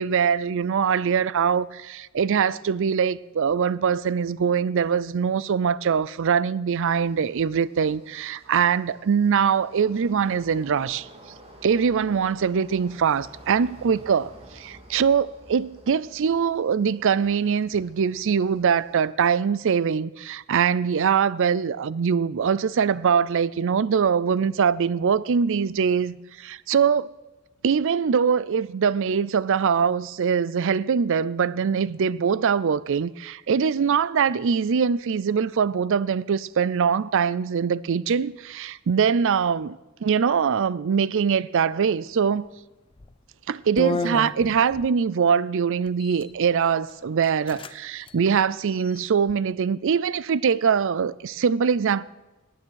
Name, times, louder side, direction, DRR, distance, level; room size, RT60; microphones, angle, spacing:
voice 1, 0.0-11.1 11.6-27.1 27.6-42.5 43.5-52.0, right 6 dB, 60° right, 0.4 m, -23 dB
sound 1, 6.7-19.1, right 1 dB, 30° right, 2.2 m, -51 dB
sound 2, 42.9-43.2 43.8-44.9 45.9-46.3 46.9-47.0 47.2-47.7 48.0-48.1 48.6-49.3, left 3 dB, 25° left, 0.5 m, -31 dB
18.5 x 9.3 x 6.4 m
head